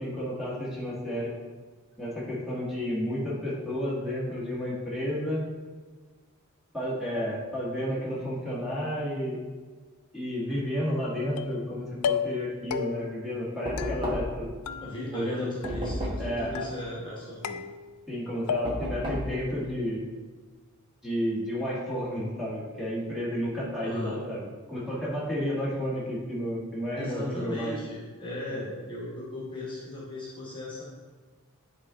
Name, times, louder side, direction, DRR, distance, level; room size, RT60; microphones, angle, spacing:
voice 1, 0.0-1.3 2.0-5.4 6.7-9.4 10.1-14.5 15.1-15.5 16.2-16.7 18.1-20.0 21.0-27.7, equal, ahead, -7 dB, 1.6 m, -31 dB
sound 1, 11.4-11.7 12.0-12.4 12.7-13.2 13.8-14.4 14.7-15.3 15.6-16.2 16.5-17.1 17.4-18.1 18.5-19.0, left 7 dB, 85° left, 0.4 m, -34 dB
Knock, 13.7-14.5 15.6-16.4 18.7-19.4, equal, 25° right, 1.2 m, -32 dB
voice 2, 14.8-17.6 23.8-24.2 27.0-30.8, left 1 dB, 20° left, -5 dB, 1.4 m, -37 dB
9.3 x 3.7 x 3.6 m, 1.4 s
head